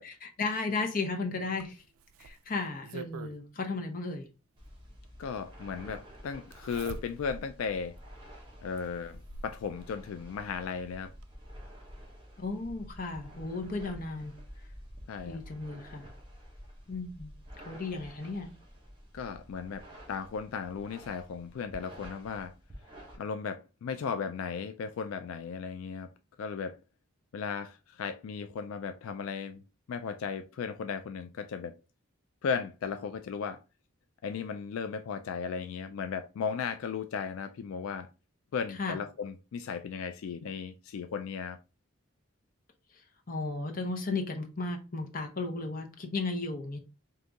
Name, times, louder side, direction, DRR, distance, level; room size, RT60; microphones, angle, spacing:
voice 1, 0.0-1.8 2.2-4.3 12.4-14.3 15.3-16.1 16.9-17.3 17.7-18.5 38.8-39.0 43.3-46.8, left 3 dB, 40° left, 0.8 m, -34 dB
Zipper (clothing), 1.6-3.4 4.8-4.9 6.5-7.5 8.0-8.1 8.8-9.6 10.8-10.9 11.2-11.3, right 5 dB, 85° right, 0.4 m, -45 dB
sound 1, 4.6-23.2, equal, 25° right, 1.0 m, -50 dB
voice 2, 5.2-8.0 8.6-11.1 15.1-15.4 19.1-22.5 23.2-26.1 26.4-26.8 27.3-29.6 29.9-31.7 32.4-33.6 34.2-38.1 38.5-41.6, left 6 dB, 80° left, 0.3 m, -36 dB
3.9 x 2.7 x 3.4 m
head